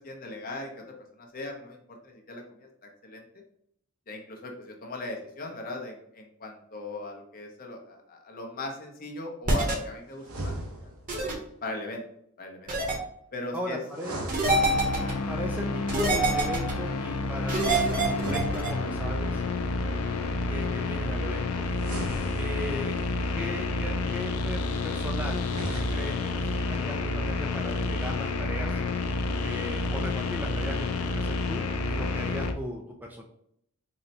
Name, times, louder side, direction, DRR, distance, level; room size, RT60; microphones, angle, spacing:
voice 1, 0.0-1.8 2.0-2.7 3.0-3.2 4.1-10.5 11.6-12.0 12.4-12.7 13.3-13.8 14.5-14.6 19.8-19.9, left 2 dB, 40° left, 2 dB, 0.7 m, -39 dB
sound 1, 9.5-9.7 11.1-11.3 12.7-13.0 14.3-15.1 15.9-16.7 17.5-18.7, right 2 dB, 40° right, 0.9 m, -25 dB
sound 2, 10.2-11.2 13.9-15.2 18.1-19.3 21.7-23.0 25.3-26.3, right 1 dB, 75° right, 0.9 m, -37 dB
voice 2, 13.5-14.1 14.9-19.4 20.5-21.6 22.4-22.9 23.3-25.5 25.9-28.8 29.4-31.6 31.9-33.3, left 1 dB, 10° right, 2 dB, 0.3 m, -37 dB
sound 3, 14.4-32.5, left 3 dB, 75° left, 0.4 m, -30 dB
3.9 x 2.2 x 4.1 m, 0.71 s
head